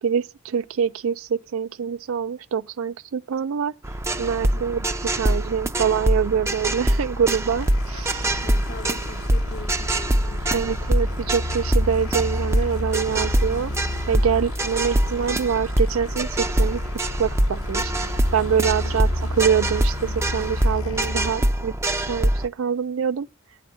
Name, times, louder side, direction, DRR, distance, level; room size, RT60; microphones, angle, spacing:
voice 1, 0.0-3.7 4.2-4.8 5.1-8.3 10.5-13.7 14.1-16.8 17.2-17.9 18.3-19.1 19.4-21.7 22.1-23.3, right 7 dB, 90° right, 0.4 m, -25 dB
sound 1, 3.8-22.5, right 1 dB, 15° right, 0.4 m, -24 dB
sound 2, 7.6-21.3, left 1 dB, 80° left, 0.9 m, -32 dB
voice 2, 7.9-10.4 18.8-19.0, left 2 dB, 50° left, 0.8 m, -41 dB
8.6 x 5.8 x 8.0 m
head